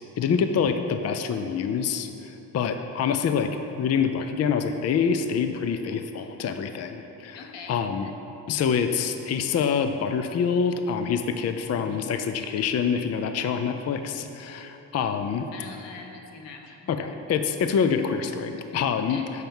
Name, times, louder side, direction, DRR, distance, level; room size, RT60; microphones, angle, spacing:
voice 1, 0.2-8.1 8.5-15.5 16.9-19.4, left 6 dB, 40° left, 8 dB, 0.5 m, -26 dB
voice 2, 7.3-7.7 15.5-16.9 19.0-19.3, left 4 dB, 90° left, 3 dB, 1.1 m, -42 dB
9.0 x 5.8 x 7.1 m, 2.9 s
cardioid pair, 140°, 42 cm